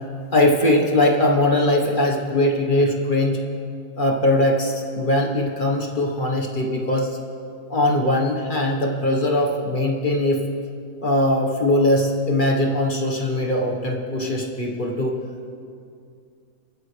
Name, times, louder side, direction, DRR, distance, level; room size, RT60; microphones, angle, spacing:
voice 1, 0.3-3.4 4.0-7.2 7.7-10.4 11.0-15.1, left 1 dB, 30° left, 0 dB, 1.2 m, -20 dB
29.0 x 9.9 x 3.4 m, 2.4 s
omnidirectional pair, 2.2 m